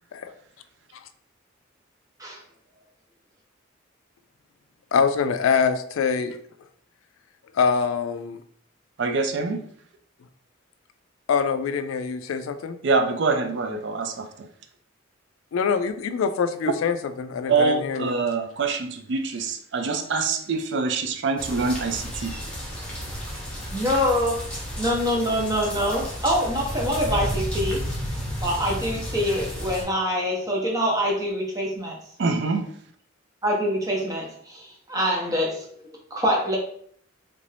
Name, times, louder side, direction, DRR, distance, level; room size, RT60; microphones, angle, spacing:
voice 1, 4.9-6.4 7.5-8.4 11.3-12.8 15.5-18.2, left 6 dB, 85° left, 10 dB, 0.3 m, -24 dB
voice 2, 9.0-9.6 12.8-14.3 17.5-22.3 32.2-32.6, right 4 dB, 60° right, 7 dB, 0.4 m, -25 dB
sound 1, 21.4-29.8, equal, 5° left, 1.0 m, -32 dB
voice 3, 23.7-24.5 24.8-27.8 28.4-32.0 33.4-36.6, equal, 15° right, -2 dB, 0.9 m, -25 dB
3.3 x 2.6 x 3.3 m, 0.62 s
head